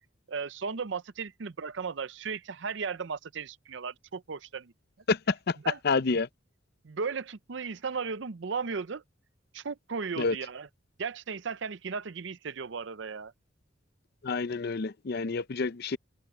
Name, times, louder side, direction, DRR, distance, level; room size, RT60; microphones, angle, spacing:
voice 1, 0.3-4.7 5.6-5.8 6.8-9.0 9.5-10.7 11.0-13.3, right 5 dB, 60° right, 0.6 m, -35 dB
voice 2, 5.1-5.6 5.8-6.3 10.2-10.3 14.2-16.0, left 4 dB, 55° left, 0.6 m, -28 dB
head